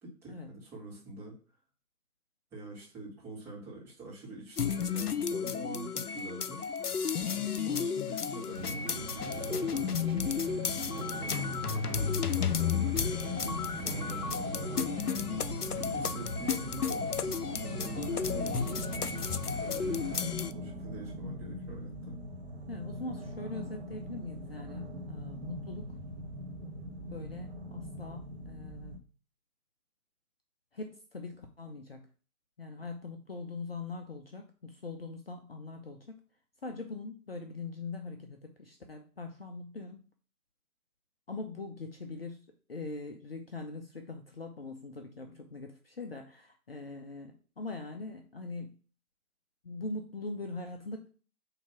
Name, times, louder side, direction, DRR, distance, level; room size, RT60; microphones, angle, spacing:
voice 1, 0.0-1.3 2.5-6.6 7.3-9.9 10.9-13.1 13.8-14.9 15.7-18.6 19.5-22.1, right 1 dB, 5° right, -7 dB, 1.4 m, -45 dB
sound 1, 4.6-20.5, left 7 dB, 80° left, 0.7 m, -33 dB
sound 2, 8.6-20.3, right 5 dB, 60° right, 0.8 m, -42 dB
sound 3, 12.8-29.0, equal, 45° right, 1.1 m, -42 dB
voice 2, 13.4-14.1 18.1-18.4 22.7-26.0 27.1-29.0 30.7-32.0 32.6-36.2 36.6-40.1 41.3-48.8 49.6-51.1, left 3 dB, 40° left, 4 dB, 0.7 m, -42 dB
7.9 x 2.9 x 5.9 m, 0.40 s
figure-of-eight pair, 145°, 45 cm